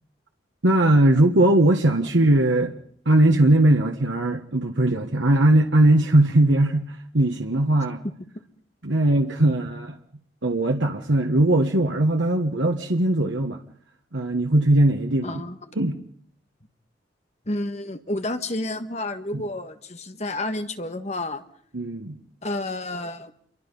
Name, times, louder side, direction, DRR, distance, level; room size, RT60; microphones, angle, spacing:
voice 1, 0.6-2.7 3.0-8.0 8.8-10.0 10.4-13.6 14.1-15.4 15.8-16.0 19.3-19.4 21.7-22.2, right 1 dB, 90° right, 4 dB, 1.5 m, -19 dB
voice 2, 15.2-15.7 17.4-21.4 22.4-23.3, left 2 dB, 35° left, 8 dB, 1.6 m, -30 dB
28.0 x 23.5 x 5.5 m, 0.63 s
head